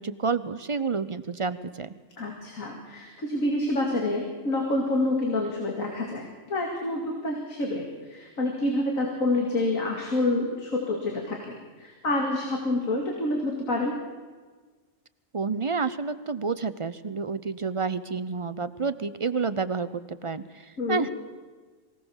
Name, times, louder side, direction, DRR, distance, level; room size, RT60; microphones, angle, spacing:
voice 1, 0.0-1.9 15.3-21.1, right 5 dB, 40° right, 13 dB, 0.4 m, -29 dB
voice 2, 2.2-13.9 20.8-21.0, left 2 dB, 85° left, 0 dB, 2.8 m, -28 dB
23.0 x 16.5 x 7.2 m, 1.4 s
omnidirectional pair, 1.4 m